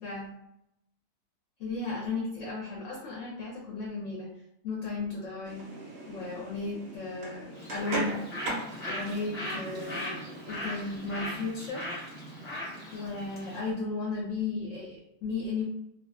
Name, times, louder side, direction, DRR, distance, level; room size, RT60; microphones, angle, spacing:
voice 1, 1.6-4.3 4.6-5.7 6.1-8.2 8.9-11.9 12.9-15.6, left 3 dB, 65° left, -2 dB, 0.8 m, -35 dB
sound 1, 5.4-11.7, right 2 dB, 60° right, 0.6 m, -40 dB
Bird, 7.5-13.7, equal, 25° left, 0.6 m, -38 dB
2.3 x 2.3 x 2.3 m, 0.80 s
omnidirectional pair, 1.6 m